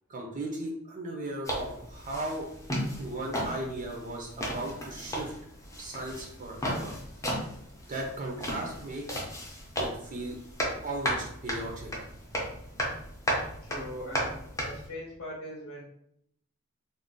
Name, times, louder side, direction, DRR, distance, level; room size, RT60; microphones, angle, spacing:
voice 1, 0.1-2.5 3.0-5.3 5.8-6.9 7.9-9.0 9.8-10.4 10.8-12.2, right 1 dB, 40° right, -1 dB, 0.5 m, -37 dB
sound 1, 1.4-14.9, equal, 15° left, 0.6 m, -35 dB
voice 2, 13.6-15.8, equal, 90° left, -4 dB, 0.8 m, -41 dB
2.5 x 2.0 x 3.7 m, 0.73 s
head